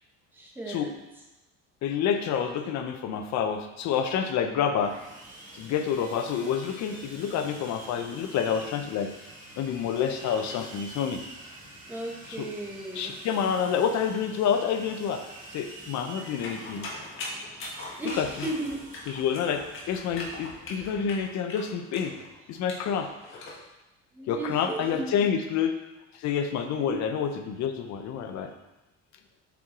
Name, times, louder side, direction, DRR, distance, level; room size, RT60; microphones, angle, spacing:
voice 1, 0.3-0.9 11.9-13.1 18.0-18.8 24.1-25.3 26.9-27.0, right 2 dB, 5° right, -2 dB, 0.9 m, -35 dB
voice 2, 1.8-5.0 5.5-9.1 9.6-11.2 12.4-12.5 13.0-15.2 15.5-16.9 18.2-18.3 19.1-22.1 22.5-23.5 24.3-25.8 26.1-28.5, left 7 dB, 70° left, 7 dB, 0.7 m, -28 dB
Sawing, 4.7-21.2, right 1 dB, 25° right, 1.9 m, -47 dB
sound 1, 16.4-23.6, left 2 dB, 45° left, 1.3 m, -40 dB
7.0 x 4.7 x 3.8 m, 1.0 s
cardioid pair, 180°, 29 cm